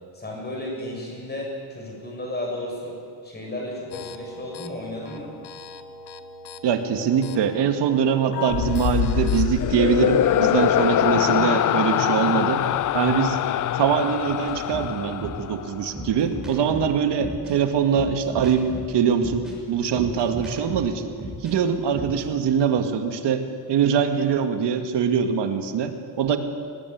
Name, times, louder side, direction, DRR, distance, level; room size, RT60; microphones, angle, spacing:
voice 1, 0.1-3.0 3.2-5.3, left 1 dB, 25° left, -1 dB, 7.5 m, -33 dB
sound 1, 3.9-9.4, left 6 dB, 70° left, 1.5 m, -39 dB
voice 2, 6.6-12.6 12.9-13.4 13.7-21.1 21.4-23.4 23.7-26.4, right 7 dB, 75° right, 6 dB, 2.3 m, -23 dB
Manic laughter, 8.5-15.9, left 11 dB, 45° left, 0.6 m, -23 dB
sound 2, 14.5-21.5 21.8-22.3, equal, ahead, 6.3 m, -36 dB
23.5 x 19.5 x 9.6 m, 2.2 s
cardioid pair, 170°, 42 cm